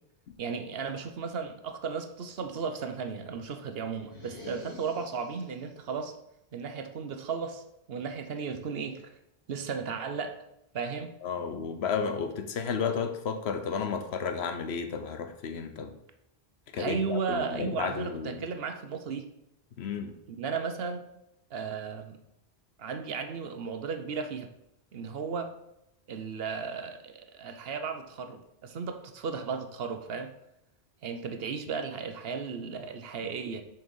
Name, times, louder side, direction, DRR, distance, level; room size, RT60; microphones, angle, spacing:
voice 1, 0.4-6.1 6.5-7.6 7.9-9.2 9.5-10.4 10.7-11.1 16.8-19.3 20.4-21.0 21.5-22.2 22.8-24.5 24.9-25.5 26.1-30.3 31.0-33.6, right 5 dB, 70° right, 7 dB, 0.9 m, -35 dB
sound 1, 4.0-5.7, left 3 dB, 65° left, 2.5 m, -46 dB
voice 2, 11.2-16.0 16.7-18.4 19.8-20.1, left 6 dB, 80° left, 8 dB, 1.0 m, -32 dB
6.3 x 4.5 x 5.4 m, 0.85 s
omnidirectional pair, 1.1 m